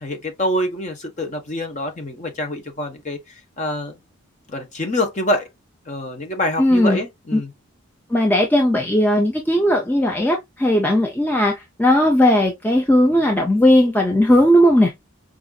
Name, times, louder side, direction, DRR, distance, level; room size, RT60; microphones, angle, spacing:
voice 1, 0.0-3.2 3.6-3.9 4.5-5.5 5.9-7.5, left 1 dB, 35° left, 0.9 m, -25 dB
voice 2, 6.6-7.0 7.3-7.4 8.1-14.9, left 1 dB, 10° left, 0.5 m, -17 dB
4.9 x 2.5 x 2.3 m
head